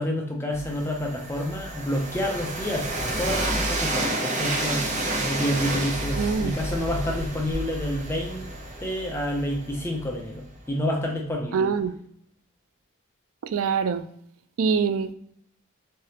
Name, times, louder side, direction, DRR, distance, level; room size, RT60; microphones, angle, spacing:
voice 1, 0.0-8.5 8.8-11.7, left 1 dB, 10° left, 0.4 m, -29 dB
Train, 0.5-10.4, right 1 dB, 35° right, 0.6 m, -30 dB
voice 2, 6.2-6.5 11.5-12.0 13.4-14.0 14.6-15.1, right 6 dB, 85° right, 0.3 m, -24 dB
3.5 x 3.3 x 2.8 m
head